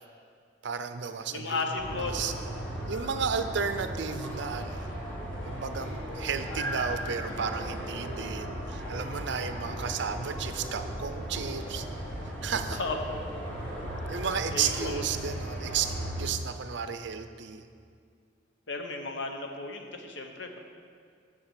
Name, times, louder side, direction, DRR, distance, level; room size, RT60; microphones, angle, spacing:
voice 1, 0.6-1.6 1.9-2.3 2.9-4.9 5.5-11.8 12.4-12.8 14.1-17.6, right 6 dB, 65° right, 9 dB, 0.5 m, -33 dB
voice 2, 1.3-2.3 12.7-13.0 14.5-15.1 18.7-20.6, left 3 dB, 65° left, 4 dB, 0.9 m, -34 dB
sound 1, 1.7-16.3, equal, 5° left, 1.9 m, -36 dB
7.0 x 6.8 x 7.6 m, 2.2 s
head